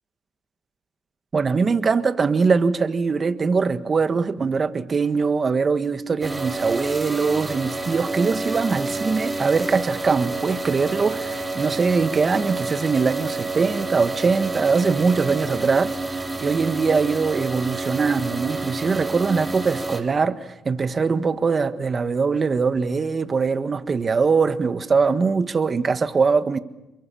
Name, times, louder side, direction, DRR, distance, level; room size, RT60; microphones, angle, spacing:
voice 1, 1.3-26.6, right 5 dB, 35° right, 1.6 m, -22 dB
sound 1, 6.2-20.0, right 2 dB, 20° right, 3.3 m, -29 dB
28.5 x 23.0 x 7.2 m
cardioid pair, 90°, 0 cm